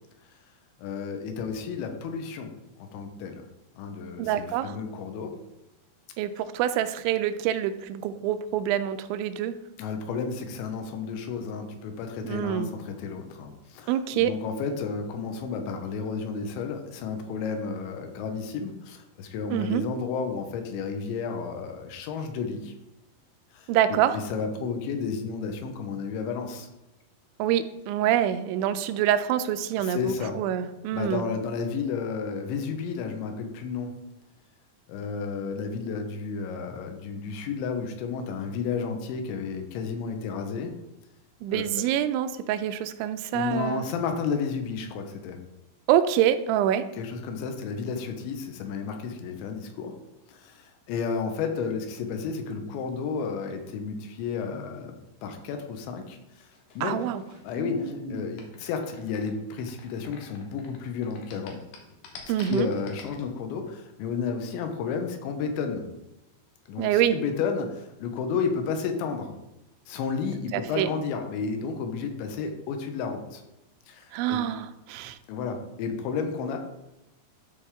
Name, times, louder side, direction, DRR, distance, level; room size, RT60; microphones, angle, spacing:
voice 1, 0.8-2.5 2.8-3.5 3.8-5.3 9.8-22.7 23.5-26.7 29.8-30.4 30.9-34.0 34.9-40.7 41.5-41.8 43.3-45.4 46.9-50.0 50.3-55.0 55.2-56.2 56.8-57.0 57.4-61.6 62.4-65.9 66.7-69.3 69.9-73.4 73.9-74.4 75.3-76.6, left 5 dB, 85° left, 5 dB, 3.2 m, -32 dB
voice 2, 4.2-4.7 6.2-9.5 12.2-12.7 13.9-14.3 19.5-19.8 23.7-24.2 27.4-31.2 41.4-43.9 45.9-46.8 56.8-57.2 62.3-62.7 66.8-67.2 70.5-70.9 74.1-75.2, right 11 dB, 85° right, 11 dB, 2.9 m, -26 dB
sound 1, 56.4-60.8 61.0-63.2, left 1 dB, 70° left, 2.2 m, -41 dB
13.0 x 4.9 x 3.5 m, 0.95 s
omnidirectional pair, 5.3 m